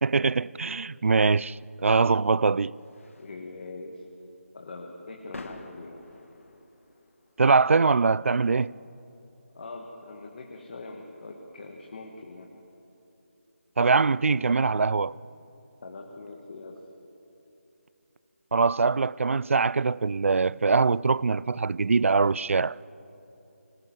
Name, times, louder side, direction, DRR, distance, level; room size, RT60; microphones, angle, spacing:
voice 1, 0.0-2.7 7.4-8.7 13.8-15.2 18.5-22.8, right 4 dB, 65° right, 0.4 m, -23 dB
sound 1, 1.7-12.7, left 2 dB, 65° left, 2.1 m, -52 dB
voice 2, 3.2-4.0 4.5-6.0 9.5-12.5 15.8-16.8, left 3 dB, 40° left, 1.8 m, -42 dB
22.5 x 19.5 x 7.7 m
figure-of-eight pair, 170°, 8 cm